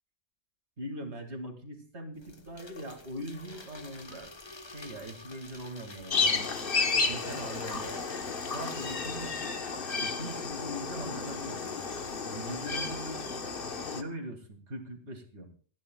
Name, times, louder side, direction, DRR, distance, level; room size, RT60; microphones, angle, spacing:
voice 1, 0.8-4.3 4.7-6.5 6.9-7.9 8.4-9.5 10.0-11.7 12.2-13.4 13.9-15.5, equal, 85° right, 3 dB, 2.6 m, -41 dB
sound 1, 2.1-12.2, left 2 dB, 25° left, 1.1 m, -49 dB
sound 2, 6.1-14.0, left 4 dB, 55° left, 1.4 m, -32 dB
28.0 x 10.5 x 2.3 m, 0.42 s
omnidirectional pair, 1.1 m